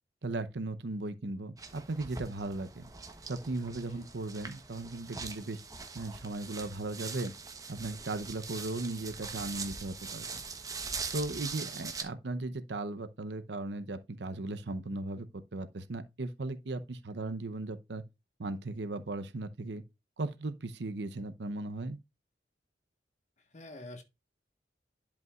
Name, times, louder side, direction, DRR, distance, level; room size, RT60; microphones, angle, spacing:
voice 1, 0.2-2.9 3.3-5.6 5.9-7.3 7.7-10.4 11.1-18.0 18.4-19.8 20.2-22.0, right 2 dB, 75° right, 0.7 m, -37 dB
sound 1, 1.6-12.0, right 4 dB, 20° right, 0.9 m, -42 dB
voice 2, 23.4-24.0, left 1 dB, 40° left, 1.3 m, -47 dB
11.0 x 5.2 x 2.4 m
head